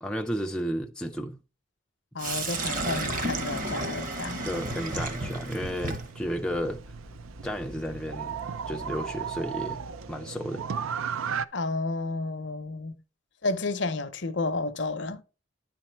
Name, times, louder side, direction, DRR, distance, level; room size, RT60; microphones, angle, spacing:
voice 1, 0.0-1.4 4.4-6.8 7.4-8.4 8.7-9.8 10.1-10.6, equal, 5° left, 0.4 m, -32 dB
voice 2, 2.1-4.5 11.5-13.0 13.4-15.2, left 3 dB, 60° left, 0.7 m, -31 dB
Sink (filling or washing), 2.2-10.1, right 2 dB, 40° right, 1.0 m, -34 dB
sound 1, 4.5-11.5, right 7 dB, 80° right, 0.4 m, -36 dB
10.0 x 4.2 x 4.4 m
head